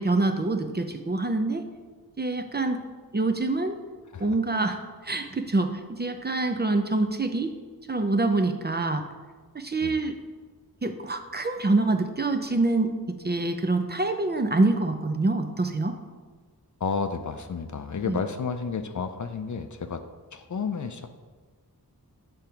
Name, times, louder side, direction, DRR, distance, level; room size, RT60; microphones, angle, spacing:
voice 1, 0.0-1.6 2.2-2.8 3.1-3.8 4.2-7.6 7.9-9.0 9.5-10.2 10.8-13.0 13.2-16.0 18.0-18.2, right 2 dB, 25° right, 7 dB, 0.5 m, -25 dB
voice 2, 16.8-20.0 20.3-21.1, left 5 dB, 50° left, 8 dB, 0.5 m, -31 dB
6.8 x 3.5 x 5.7 m, 1.4 s
wide cardioid pair, 70°, 38 cm